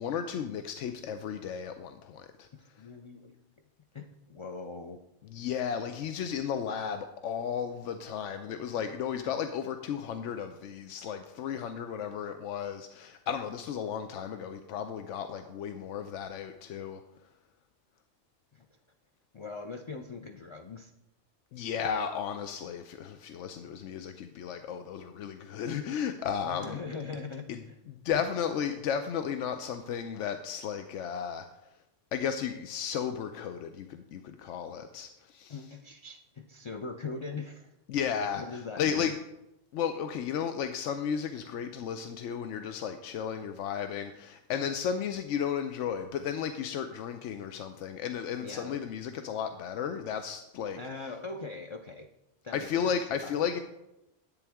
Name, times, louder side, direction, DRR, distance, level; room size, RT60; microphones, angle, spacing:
voice 1, 0.0-2.5 5.3-17.0 21.5-26.8 27.5-27.6 27.9-31.5 32.1-35.6 37.9-38.4 38.8-39.2 39.7-50.8 52.5-53.6, left 7 dB, 90° left, 7 dB, 0.9 m, -34 dB
voice 2, 2.8-3.4 3.9-5.0 18.5-18.7 19.3-20.9 26.4-27.8 35.5-37.7 38.4-39.1 48.4-48.8 50.8-52.1 52.4-53.4, left 4 dB, 50° left, 5 dB, 0.3 m, -41 dB
10.5 x 8.4 x 3.5 m, 0.89 s
omnidirectional pair, 1.2 m